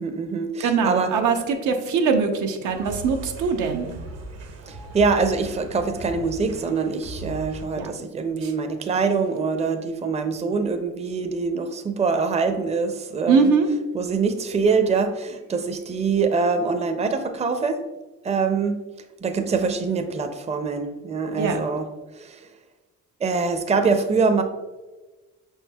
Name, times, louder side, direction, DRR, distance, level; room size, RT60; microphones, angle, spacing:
voice 1, 0.0-1.1 4.7-13.5 13.9-17.8 18.2-18.8 19.2-21.9 22.1-22.5 23.2-24.4, right 4 dB, 20° right, 7 dB, 0.4 m, -24 dB
voice 2, 0.6-3.9 7.8-7.9 8.4-8.5 13.3-13.7 21.4-21.6, right 5 dB, 90° right, 4 dB, 0.6 m, -22 dB
sound 1, 2.6-7.7, right 2 dB, 55° right, 0.7 m, -38 dB
5.4 x 4.4 x 2.2 m, 1.2 s
cardioid pair, 90°, 30 cm